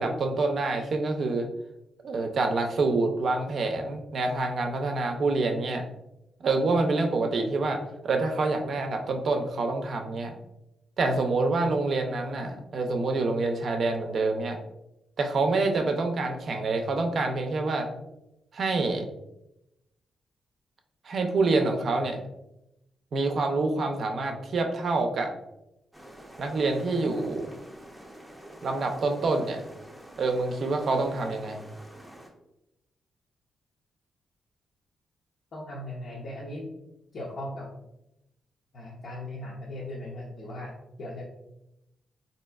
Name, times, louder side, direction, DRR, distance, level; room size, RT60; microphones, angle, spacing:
voice 1, 0.0-1.5 2.0-5.8 6.4-10.3 11.0-14.6 15.2-17.9 18.5-19.0 21.0-22.2 23.1-25.3 26.4-27.5 28.6-29.6 30.2-31.6, right 3 dB, 55° right, 4 dB, 0.5 m, -27 dB
sound 1, 25.9-32.3, equal, ahead, 0.6 m, -48 dB
voice 2, 35.5-36.7 37.1-37.7 38.7-41.2, left 1 dB, 60° left, -4 dB, 0.7 m, -38 dB
4.0 x 2.7 x 2.3 m, 0.88 s
cardioid pair, 125°, 0 cm